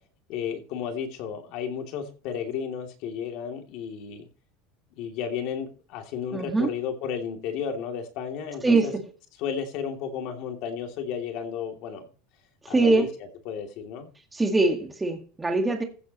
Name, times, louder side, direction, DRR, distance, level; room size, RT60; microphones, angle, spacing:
voice 1, 0.3-4.3 5.0-8.9 9.4-12.1 12.7-13.1 13.4-14.1, left 7 dB, 50° left, 2.8 m, -33 dB
voice 2, 6.3-6.7 8.6-8.9 12.7-13.1 14.3-15.8, right 3 dB, 10° right, 1.8 m, -22 dB
15.5 x 8.5 x 3.1 m
cardioid pair, 170°, 0 cm